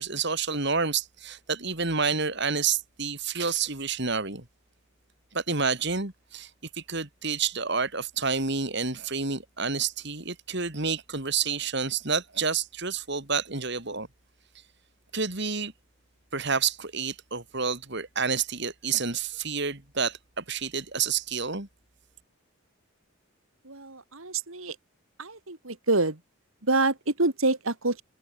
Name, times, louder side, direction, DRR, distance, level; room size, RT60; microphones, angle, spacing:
voice 1, 0.0-4.4 5.3-6.5 6.7-14.1 15.1-15.7 16.3-21.7, right 5 dB, 55° right, 2.9 m, -29 dB
voice 2, 23.6-24.8 25.2-26.2 26.6-28.0, right 2 dB, 70° right, 2.6 m, -26 dB
head